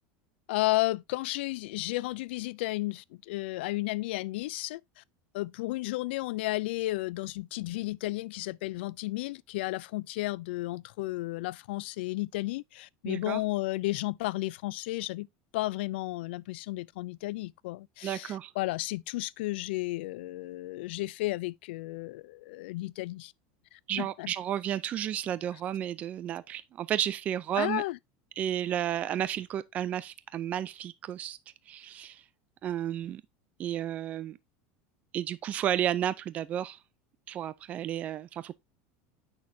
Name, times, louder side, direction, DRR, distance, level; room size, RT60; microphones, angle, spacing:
voice 1, 0.5-5.0 5.3-15.3 15.5-23.3 23.7-24.3 27.6-28.0, left 19 dB, 85° left, 0.4 m, -33 dB
voice 2, 13.1-13.4 18.0-18.5 23.9-27.8 28.4-31.4 31.7-32.2 32.6-33.2 33.6-34.4 35.1-36.8 37.3-38.5, right 10 dB, 25° right, 0.4 m, -32 dB
8.5 x 6.1 x 2.7 m
cardioid pair, 175°, 6 cm